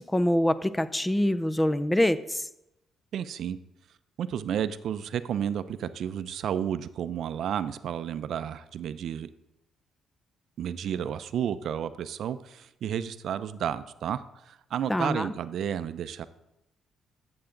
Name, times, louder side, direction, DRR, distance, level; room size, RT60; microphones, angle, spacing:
voice 1, 0.0-2.4 14.9-15.3, left 1 dB, 10° left, 14 dB, 0.5 m, -25 dB
voice 2, 3.1-3.6 4.2-9.3 10.6-16.2, right 9 dB, 70° right, 13 dB, 0.5 m, -32 dB
11.5 x 7.9 x 3.8 m, 0.89 s
cardioid pair, 90°, 0 cm